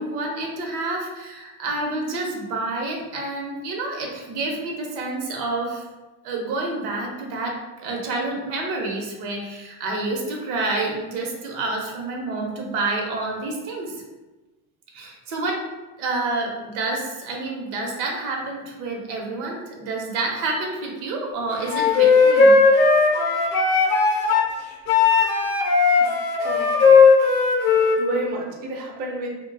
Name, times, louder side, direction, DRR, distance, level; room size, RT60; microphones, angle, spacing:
voice 1, 0.0-5.8 6.2-14.0 14.9-15.6 16.0-22.6, right 2 dB, 90° right, 0 dB, 0.9 m, -28 dB
Wind instrument woodwind instrument, 21.7-24.5 24.9-28.0, left 4 dB, 40° left, 0.5 m, -17 dB
voice 2, 28.0-29.4, right 1 dB, 25° right, 0 dB, 0.3 m, -30 dB
2.3 x 2.2 x 3.8 m, 1.1 s
cardioid pair, 145°, 43 cm